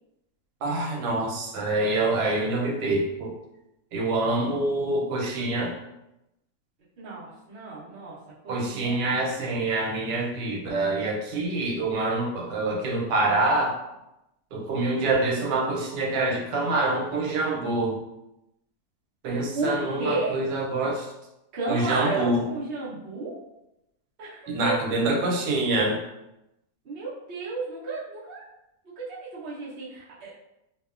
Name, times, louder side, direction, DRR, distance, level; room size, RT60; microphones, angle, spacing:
voice 1, 0.6-3.3 3.9-5.8 8.5-13.8 14.5-18.0 19.2-21.1 21.7-22.4 24.5-26.0, right 2 dB, 90° right, 0 dB, 1.2 m, -26 dB
voice 2, 7.0-8.2 8.4-9.1 19.5-20.5 21.5-23.4 24.2-24.8 26.8-28.4 28.8-30.3, right 3 dB, 65° right, -8 dB, 0.6 m, -33 dB
2.8 x 2.1 x 2.3 m, 0.89 s
omnidirectional pair, 1.8 m